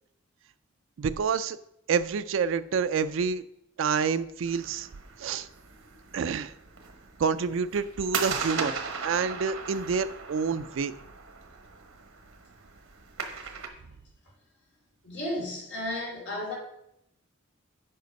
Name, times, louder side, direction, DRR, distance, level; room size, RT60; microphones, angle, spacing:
voice 1, 1.0-1.6 1.9-3.4 3.8-4.9 5.2-5.5 6.1-6.5 7.2-8.7 9.0-10.9, right 6 dB, 65° right, 11 dB, 0.4 m, -28 dB
sound 1, 4.4-13.7, right 5 dB, 85° right, 1.1 m, -38 dB
voice 2, 15.0-16.5, left 1 dB, 55° left, -2 dB, 2.8 m, -33 dB
7.8 x 5.2 x 5.2 m, 0.79 s
head